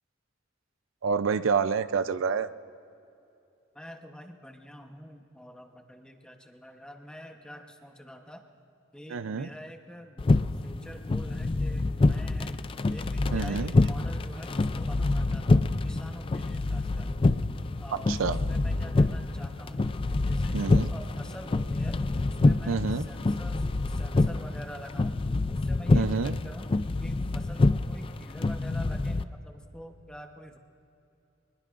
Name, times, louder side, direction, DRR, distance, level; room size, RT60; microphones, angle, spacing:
voice 1, 1.0-2.5 9.1-9.5 13.3-13.7 18.1-18.4 20.5-20.9 22.7-23.0 25.9-26.4, right 5 dB, 90° right, 13 dB, 0.5 m, -28 dB
voice 2, 3.7-8.4 8.9-12.5 12.9-17.1 17.8-19.9 20.2-25.2 25.5-26.7 27.0-30.6, equal, 5° left, 4 dB, 1.0 m, -46 dB
sound 1, 10.2-29.2, left 2 dB, 25° left, 0.4 m, -26 dB
24.0 x 21.0 x 2.5 m, 2.7 s
head